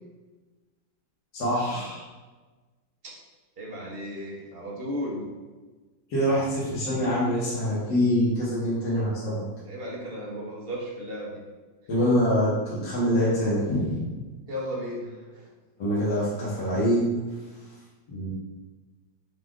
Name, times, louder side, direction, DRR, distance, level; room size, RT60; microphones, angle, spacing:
voice 1, 1.3-2.0 6.1-9.4 11.9-14.0 15.8-17.1 18.1-18.3, equal, 75° left, -9 dB, 1.8 m, -25 dB
voice 2, 3.6-5.3 9.7-11.4 14.4-15.5, equal, 50° right, -3 dB, 0.7 m, -35 dB
5.0 x 2.4 x 3.5 m, 1.3 s
omnidirectional pair, 1.9 m